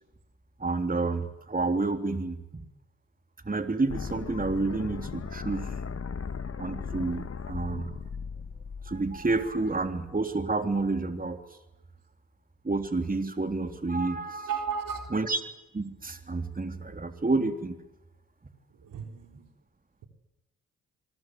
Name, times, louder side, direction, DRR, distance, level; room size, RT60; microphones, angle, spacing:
voice 1, 0.6-2.6 3.5-5.7 6.6-7.9 8.9-11.4 12.6-14.5 15.1-15.4 15.7-17.8, right 3 dB, 25° right, 7 dB, 3.5 m, -29 dB
sound 1, 3.9-9.9, left 5 dB, 45° left, 2.0 m, -37 dB
voice 2, 14.5-15.1 18.8-19.5, right 6 dB, 70° right, 5 dB, 3.9 m, -34 dB
27.0 x 23.5 x 7.9 m, 0.92 s
hypercardioid pair, 45°, 34 cm